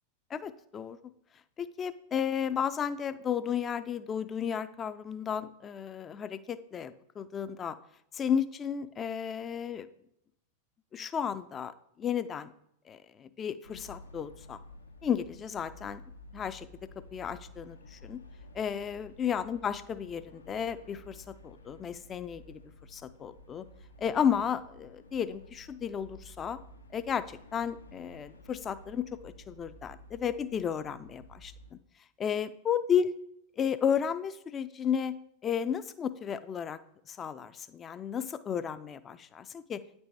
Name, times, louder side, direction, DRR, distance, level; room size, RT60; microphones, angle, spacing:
voice 1, 0.3-1.0 1.6-6.9 7.2-7.8 8.1-9.9 10.9-11.7 12.0-12.5 12.9-14.6 15.0-16.0 16.3-16.7 17.1-18.2 18.5-22.6 22.9-23.7 24.0-26.6 26.9-31.8 32.2-33.1 33.6-35.1 35.4-36.8 37.1-39.8, left 8 dB, 25° left, 13 dB, 0.4 m, -33 dB
sound 1, 13.6-31.8, left 1 dB, 80° left, 0.7 m, -52 dB
9.4 x 4.0 x 3.4 m, 0.73 s
figure-of-eight pair, 90°, 0 cm